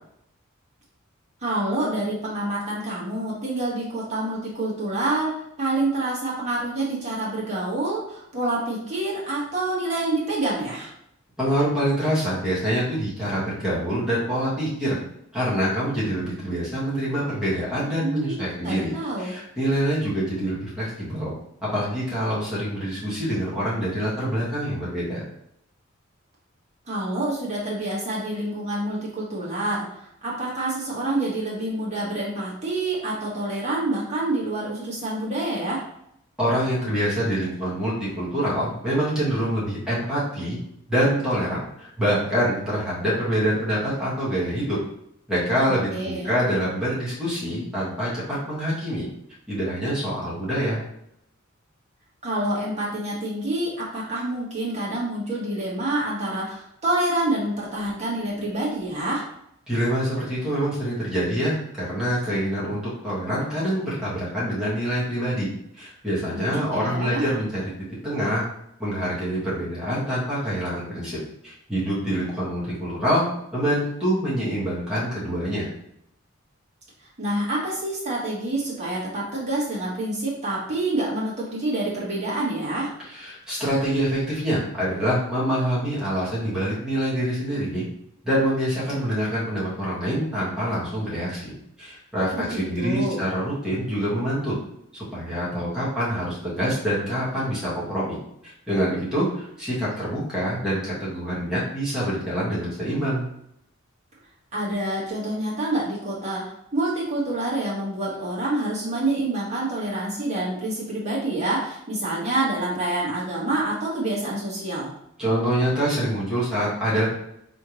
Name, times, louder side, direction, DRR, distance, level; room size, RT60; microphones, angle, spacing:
voice 1, 1.4-10.9 18.0-18.4 18.6-19.3 26.9-35.8 45.7-46.3 52.2-59.2 66.3-67.2 77.2-82.9 92.3-93.2 104.5-114.9, right 2 dB, 35° right, -6 dB, 1.7 m, -27 dB
voice 2, 11.4-15.0 15.3-21.3 21.6-25.2 36.4-40.6 40.9-44.8 45.3-49.1 49.5-50.8 59.7-65.5 65.8-67.7 68.0-68.4 68.8-71.2 71.4-73.2 73.5-75.7 83.1-87.9 88.2-94.6 94.9-98.2 98.4-103.3 115.2-117.1, equal, 5° right, -9 dB, 1.8 m, -25 dB
4.4 x 3.5 x 3.2 m, 0.75 s
head